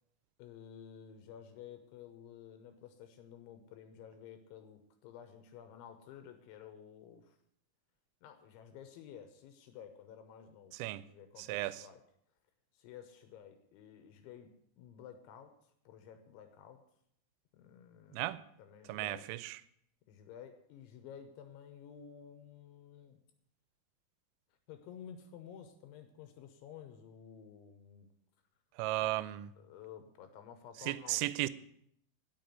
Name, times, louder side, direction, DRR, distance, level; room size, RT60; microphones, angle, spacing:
voice 1, 0.4-7.4 8.2-12.0 12.7-16.8 17.5-19.3 20.1-23.2 24.7-28.1 29.0-29.1 29.6-31.3, left 8 dB, 75° left, 3.1 m, -53 dB
voice 2, 11.4-11.8 18.1-18.4 18.9-19.6 28.8-29.4 30.9-31.5, right 17 dB, 85° right, 3.2 m, -35 dB
10.5 x 7.0 x 9.1 m
omnidirectional pair, 5.9 m